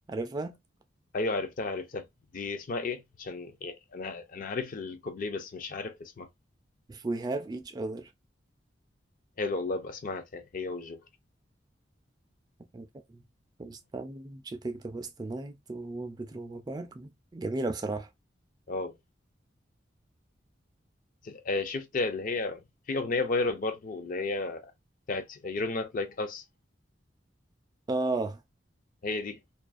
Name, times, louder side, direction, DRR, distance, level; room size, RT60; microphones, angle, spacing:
voice 1, 0.1-0.6 6.9-8.1 12.7-13.2 13.6-18.1 27.9-28.4, right 2 dB, 20° right, 0.3 m, -35 dB
voice 2, 1.1-2.1 2.3-6.3 9.4-11.0 18.7-19.0 21.2-24.7 25.1-26.4 29.0-29.4, left 3 dB, 45° left, 0.4 m, -33 dB
2.4 x 2.3 x 2.4 m
head